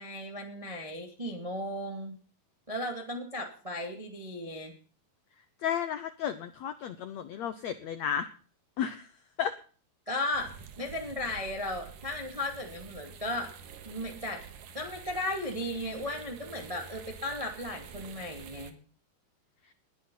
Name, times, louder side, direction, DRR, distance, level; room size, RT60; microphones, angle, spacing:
voice 1, 0.0-2.2 2.7-4.7 10.0-13.5 13.8-14.4 14.7-18.8, left 1 dB, 10° right, 3 dB, 1.7 m, -36 dB
voice 2, 5.6-8.3 8.8-9.1 9.4-9.5, left 8 dB, 75° left, 12 dB, 1.6 m, -33 dB
sound 1, 10.3-18.7, right 6 dB, 65° right, 3.0 m, -48 dB
20.5 x 10.5 x 5.6 m, 0.42 s
omnidirectional pair, 4.3 m